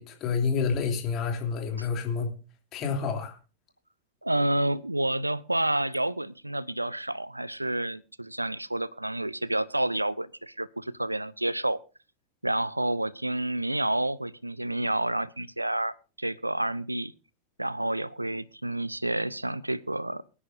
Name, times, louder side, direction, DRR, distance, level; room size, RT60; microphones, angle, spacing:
voice 1, 0.0-2.3 2.7-3.3, left 5 dB, 35° left, 3.1 m, -28 dB
voice 2, 4.2-11.8 12.4-17.1 17.6-20.2, right 1 dB, 85° right, 0.5 m, -29 dB
24.0 x 9.9 x 2.7 m
figure-of-eight pair, 90°, 0 cm